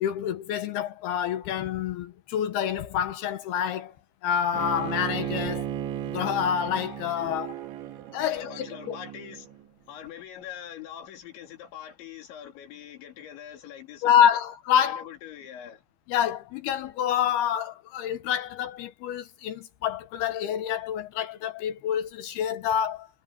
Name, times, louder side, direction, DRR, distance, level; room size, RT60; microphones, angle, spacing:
voice 1, 0.0-3.9 4.2-5.7 6.1-7.5 8.1-8.9 14.0-15.0 16.1-23.1, left 9 dB, 70° left, 2.7 m, -27 dB
Bowed string instrument, 4.5-9.6, right 10 dB, 85° right, 4.0 m, -35 dB
voice 2, 8.2-9.6 9.9-14.4 14.8-15.8, left 10 dB, 90° left, 5.3 m, -43 dB
omnidirectional pair, 5.1 m